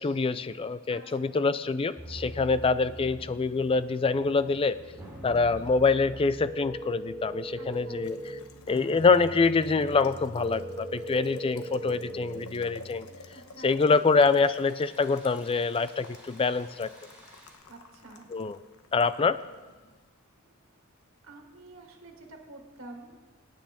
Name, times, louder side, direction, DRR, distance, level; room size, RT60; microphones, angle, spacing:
voice 1, 0.0-4.8 5.2-8.2 8.7-13.1 13.6-16.9 18.3-18.6 18.9-19.4, left 4 dB, 25° left, 15 dB, 0.3 m, -25 dB
voice 2, 0.9-1.4 5.1-5.4 7.6-8.0 13.3-14.0 17.7-18.3 20.4-20.5 21.2-23.2, right 2 dB, 70° right, 1 dB, 1.9 m, -49 dB
sound 1, 2.0-17.6, right 1 dB, 10° right, 3.4 m, -47 dB
Boiling, 2.2-20.1, left 3 dB, 85° left, 1.0 m, -51 dB
sound 2, 6.4-8.4 10.4-12.4, right 1 dB, 55° left, 1.0 m, -39 dB
26.0 x 9.1 x 3.6 m, 1.3 s
head